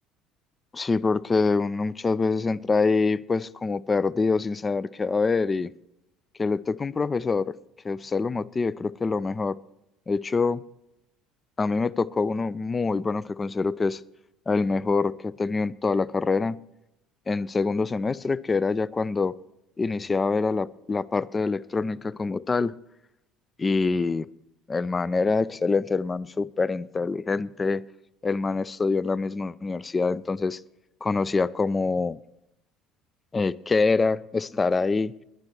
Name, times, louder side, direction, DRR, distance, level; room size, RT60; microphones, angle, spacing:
voice 1, 0.7-5.7 6.4-7.6 7.8-9.6 10.1-10.6 11.6-14.0 14.5-16.6 17.3-19.3 19.8-22.8 23.6-24.3 24.7-27.8 28.2-30.6 31.0-32.2 33.3-35.1, left 4 dB, 25° left, 0.4 m, -25 dB
21.0 x 10.5 x 3.1 m
figure-of-eight pair, 60°, 0 cm